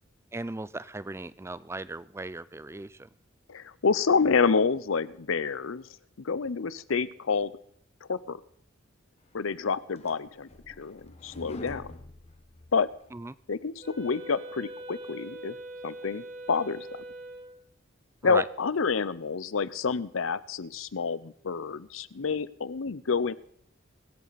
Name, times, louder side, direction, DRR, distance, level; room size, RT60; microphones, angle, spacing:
voice 1, 0.3-3.1 13.1-13.4 18.2-18.4, right 2 dB, 15° right, 18 dB, 0.4 m, -37 dB
voice 2, 3.5-5.8 6.2-7.5 8.1-8.4 9.3-11.9 12.7-12.9 13.5-15.6 15.8-16.9 18.2-23.3, left 5 dB, 85° left, 17 dB, 0.7 m, -28 dB
sound 1, 9.5-13.2, left 2 dB, 30° left, 1.1 m, -46 dB
Wind instrument woodwind instrument, 13.8-17.6, right 1 dB, 35° right, 3.2 m, -42 dB
24.0 x 8.5 x 4.1 m, 0.71 s
head